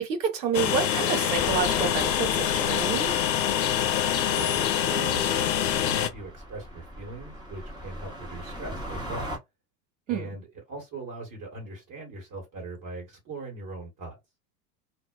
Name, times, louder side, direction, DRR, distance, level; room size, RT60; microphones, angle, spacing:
voice 1, 0.0-3.1 10.1-10.3, right 7 dB, 90° right, 1.0 m, -29 dB
Train, 0.5-6.1, left 10 dB, 90° left, 0.6 m, -25 dB
sound 1, 1.3-9.4, equal, 10° right, 0.9 m, -40 dB
voice 2, 4.2-9.4 10.1-14.2, right 2 dB, 40° right, 1.5 m, -40 dB
2.6 x 2.1 x 2.3 m
hypercardioid pair, 100°, 49 cm